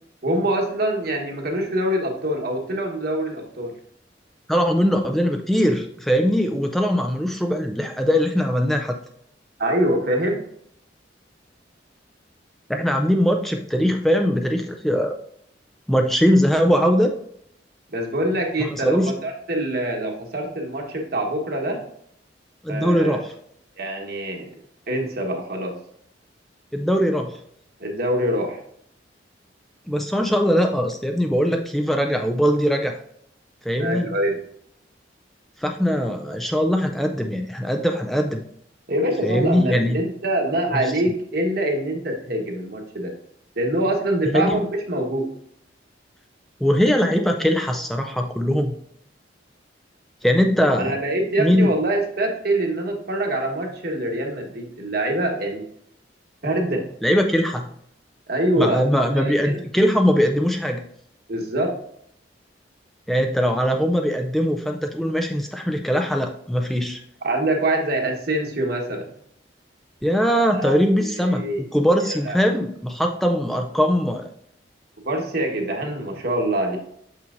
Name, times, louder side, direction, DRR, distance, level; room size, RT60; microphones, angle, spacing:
voice 1, 0.2-3.7 9.6-10.4 17.9-21.8 22.7-23.2 23.8-24.5 24.9-25.8 27.8-28.6 33.8-34.4 38.9-43.1 43.6-45.3 50.7-55.6 56.4-56.9 58.3-59.6 61.3-61.8 67.2-69.1 70.5-71.6 72.1-72.6 75.0-76.8, right 1 dB, 55° right, 1 dB, 1.3 m, -24 dB
voice 2, 4.5-9.0 12.7-15.2 15.9-17.1 18.6-19.1 22.6-23.3 26.7-27.4 29.9-33.0 33.7-34.1 35.6-38.4 39.2-40.0 44.3-44.5 46.6-48.7 50.2-50.9 51.4-51.7 57.0-57.7 58.6-60.8 63.1-67.0 70.0-74.3, equal, ahead, 4 dB, 0.3 m, -21 dB
6.6 x 5.6 x 2.5 m, 0.68 s
head